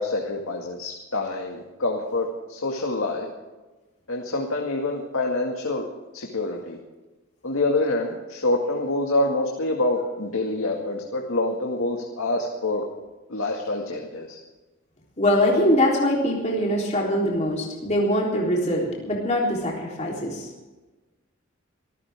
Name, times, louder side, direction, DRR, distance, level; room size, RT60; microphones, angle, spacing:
voice 1, 0.0-3.3 4.1-5.9 6.1-6.8 7.4-12.8 13.3-14.4, left 2 dB, 90° left, 0 dB, 2.1 m, -26 dB
voice 2, 15.2-20.5, left 1 dB, 35° left, -3 dB, 3.7 m, -23 dB
26.0 x 14.5 x 3.7 m, 1.2 s
head